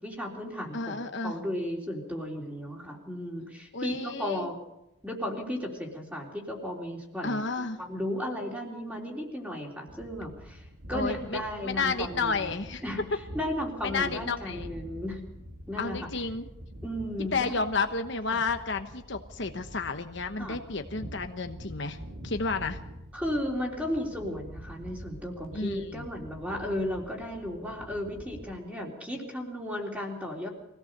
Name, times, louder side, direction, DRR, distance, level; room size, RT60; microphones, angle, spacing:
voice 1, 0.0-4.6 5.0-12.5 12.8-13.0 13.3-15.3 15.7-16.0 16.8-17.5 18.3-18.4 20.4-20.6 23.1-30.5, left 1 dB, 5° right, 0 dB, 3.6 m, -35 dB
voice 2, 0.7-1.3 3.7-4.5 7.2-7.8 10.9-12.8 13.8-14.7 15.8-16.5 17.3-22.0 22.2-22.8 25.5-26.1, left 4 dB, 55° left, 6 dB, 1.1 m, -31 dB
sound 1, 9.9-28.5, equal, 65° right, 4.6 m, -45 dB
23.5 x 17.0 x 6.7 m, 0.90 s
head